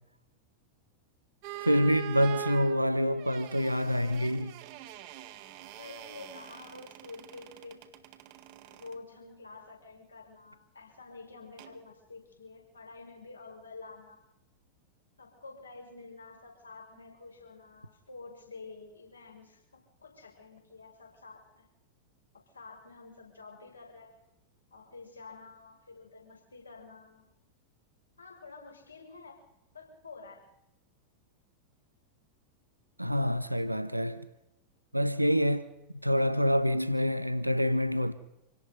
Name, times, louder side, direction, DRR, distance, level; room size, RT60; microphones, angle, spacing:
sound 1, 1.4-9.0 11.6-11.8, right 13 dB, 45° right, 1.8 m, -44 dB
voice 1, 1.6-4.5 33.0-34.3 34.9-35.7 36.0-38.1, equal, 90° right, 1.1 m, -27 dB
voice 2, 5.7-7.9 8.7-14.2 15.2-21.6 22.5-24.1 24.7-27.3 28.2-29.4 29.7-30.5, left 3 dB, 75° left, 6.6 m, -49 dB
27.0 x 17.5 x 5.5 m
figure-of-eight pair, 90°, 0 cm